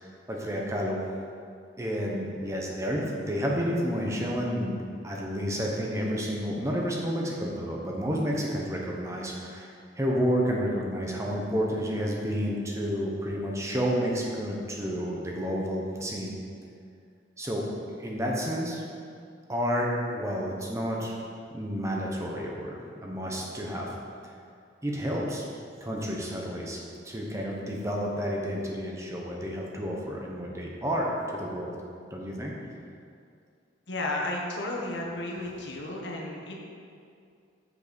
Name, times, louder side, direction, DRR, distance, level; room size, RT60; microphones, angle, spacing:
voice 1, 0.0-1.0 1.8-4.8 5.0-16.3 17.4-17.6 18.0-18.8 19.5-21.2 21.5-23.9 24.8-25.4 25.8-26.8 27.0-31.7 32.1-32.5, equal, 15° right, -2 dB, 1.0 m, -30 dB
voice 2, 33.9-36.6, left 2 dB, 80° left, -1 dB, 1.4 m, -33 dB
7.9 x 6.8 x 5.2 m, 2.4 s
head